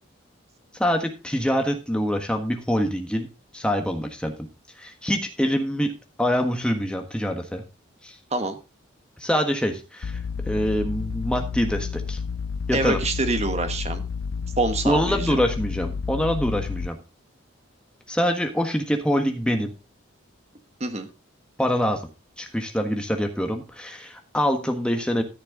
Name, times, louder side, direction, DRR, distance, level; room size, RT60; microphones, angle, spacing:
voice 1, 0.8-3.3 3.5-4.5 4.8-7.7 8.0-8.2 9.2-10.2 10.5-12.2 12.7-13.0 14.8-17.0 18.1-19.7 21.6-22.0 22.4-25.2, equal, 5° left, 3 dB, 1.4 m, -25 dB
sound 1, 10.0-16.9, left 5 dB, 85° left, 0.4 m, -30 dB
voice 2, 12.7-14.0 14.6-15.4 20.8-21.1, right 2 dB, 30° right, 8 dB, 1.3 m, -26 dB
14.0 x 6.7 x 3.8 m, 0.29 s
head